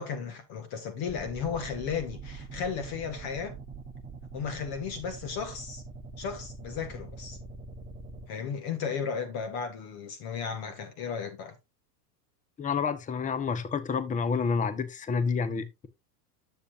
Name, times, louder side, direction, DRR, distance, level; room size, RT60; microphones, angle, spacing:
voice 1, 0.0-3.6 4.3-5.8 6.2-7.4 8.3-11.6, left 6 dB, 45° left, 1.9 m, -34 dB
sound 1, 1.0-8.3, right 4 dB, 15° right, 1.2 m, -43 dB
voice 2, 12.6-15.9, left 5 dB, 15° left, 0.9 m, -29 dB
9.7 x 7.2 x 2.5 m
supercardioid pair, 120°, 49 cm